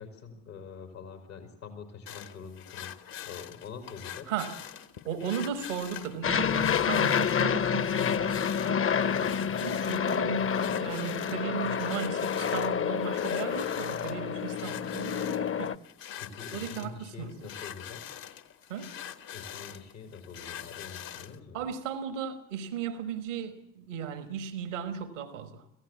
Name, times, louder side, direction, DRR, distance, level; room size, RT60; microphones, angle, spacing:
voice 1, 0.0-2.9 3.2-4.3 16.2-18.0 19.3-21.6, left 5 dB, 85° left, 4.3 m, -45 dB
sound 1, 2.1-21.4, left 10 dB, 70° left, 1.6 m, -44 dB
voice 2, 5.0-15.8 16.5-17.4 18.7-18.9 21.5-25.6, right 7 dB, 85° right, 1.5 m, -36 dB
Aircraft, 6.2-15.7, left 7 dB, 35° left, 0.8 m, -28 dB
26.5 x 16.0 x 8.3 m
hypercardioid pair, 40°, 36 cm